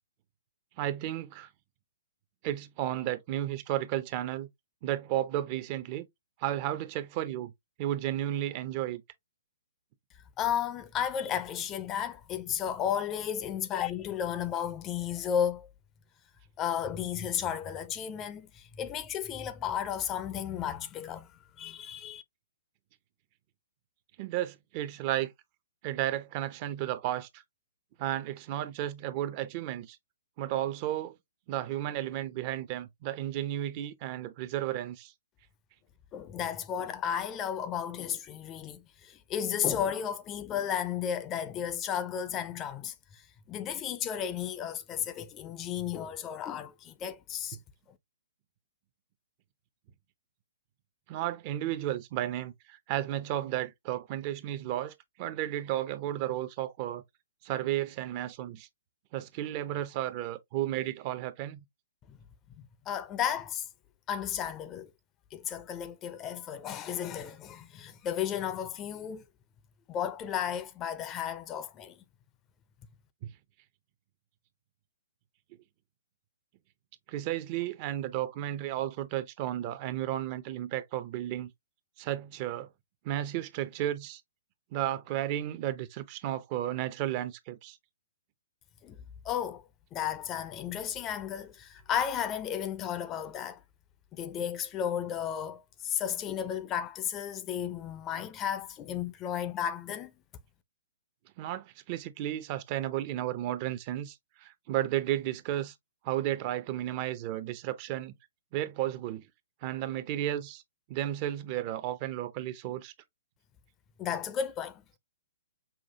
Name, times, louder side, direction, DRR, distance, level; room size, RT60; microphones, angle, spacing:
voice 1, 0.8-1.5 2.4-4.5 4.8-6.1 6.4-7.5 7.8-9.0 24.2-25.3 25.8-27.4 28.0-30.0 30.4-31.2 31.5-35.1 51.1-57.0 57.4-58.7 59.1-61.6 73.2-73.3 77.1-81.5 82.0-82.7 83.0-84.2 84.7-87.8 101.4-105.7 106.0-108.1 108.5-109.3 109.6-110.6 110.9-112.9, right 13 dB, 35° right, 0.6 m, -33 dB
voice 2, 10.4-15.7 16.6-21.3 21.6-22.2 36.1-47.6 62.1-62.2 62.6-63.7 64.1-64.9 65.3-69.2 69.9-72.0 88.8-89.0 89.2-89.6 89.9-93.6 94.1-100.1 114.0-115.0, left 9 dB, 25° left, 0.5 m, -33 dB
5.7 x 2.4 x 2.7 m
figure-of-eight pair, 120°, 0 cm